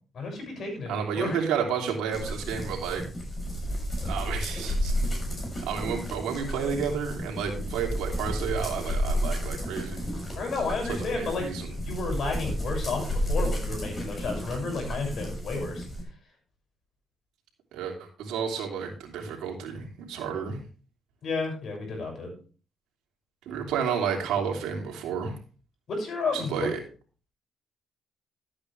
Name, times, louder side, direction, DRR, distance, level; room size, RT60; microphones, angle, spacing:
voice 1, 0.1-1.4 10.3-11.4 11.8-15.8 21.2-22.3 25.9-26.5, left 3 dB, 60° left, 2 dB, 6.4 m, -32 dB
voice 2, 0.9-3.0 4.0-4.9 5.6-10.1 10.8-11.8 17.7-20.6 23.4-25.3 26.3-26.8, right 7 dB, 90° right, 1 dB, 3.0 m, -31 dB
sound 1, 2.1-16.0, equal, 30° left, 6.8 m, -32 dB
13.5 x 8.6 x 3.3 m, 0.38 s
cardioid pair, 90°, 0 cm